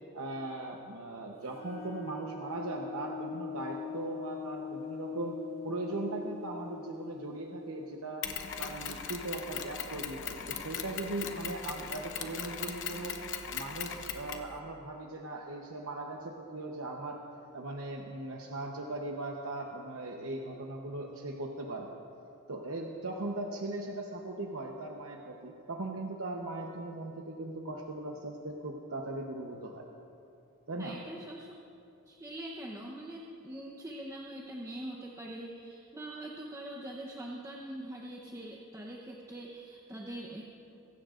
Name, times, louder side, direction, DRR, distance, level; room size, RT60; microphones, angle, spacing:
voice 1, 0.1-5.4 5.6-8.3 8.6-13.2 13.5-17.2 17.5-21.9 22.5-29.8 30.7-31.0, right 2 dB, 65° right, 1 dB, 1.0 m, -39 dB
sound 1, 1.4-8.9, left 6 dB, 30° left, 2.9 m, -43 dB
Mechanisms, 8.2-14.5, left 7 dB, 55° left, 0.9 m, -39 dB
voice 2, 30.8-31.5 32.1-40.4, right 1 dB, 15° right, -3 dB, 0.9 m, -43 dB
23.0 x 16.5 x 2.5 m, 2.6 s
head